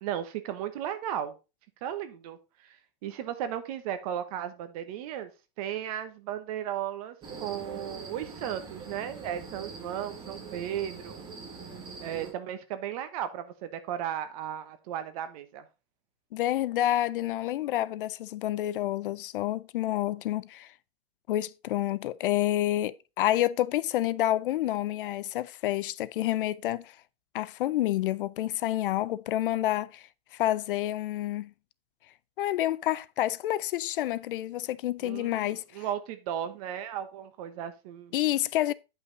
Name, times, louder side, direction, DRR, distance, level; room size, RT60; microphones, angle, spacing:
voice 1, 0.0-1.3 1.8-2.4 2.6-5.3 5.6-11.2 12.0-15.6 35.0-38.1, right 10 dB, 40° right, 1.1 m, -35 dB
sound 1, 7.2-12.3, right 4 dB, 15° right, 1.7 m, -43 dB
voice 2, 16.3-20.7 21.3-27.0 27.3-31.5 32.4-35.8 38.1-38.7, left 14 dB, 60° left, 0.5 m, -29 dB
9.5 x 5.7 x 3.9 m
supercardioid pair, 170°, 30 cm